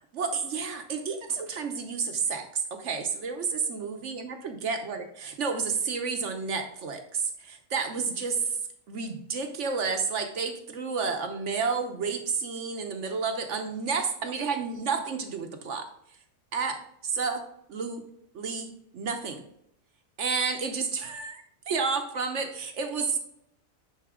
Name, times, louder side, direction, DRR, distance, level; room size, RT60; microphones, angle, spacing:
voice 1, 0.0-2.5 2.8-8.4 8.9-15.9 16.5-18.0 18.3-19.4 20.2-23.2, right 5 dB, 60° right, 5 dB, 1.1 m, -31 dB
10.0 x 3.9 x 3.7 m, 0.73 s
omnidirectional pair, 1.5 m